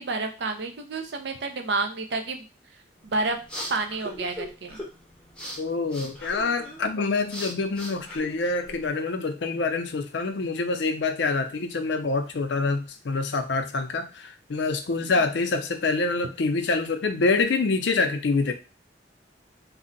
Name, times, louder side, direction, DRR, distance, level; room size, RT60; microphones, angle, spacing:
voice 1, 0.0-2.5 3.0-3.4 3.7-4.8 15.1-15.2, right 3 dB, 65° right, 6 dB, 0.5 m, -29 dB
sound 1, 3.0-8.9, equal, 5° left, 0.6 m, -40 dB
voice 2, 5.6-18.5, left 3 dB, 70° left, 7 dB, 0.5 m, -26 dB
2.6 x 2.1 x 3.8 m, 0.32 s
head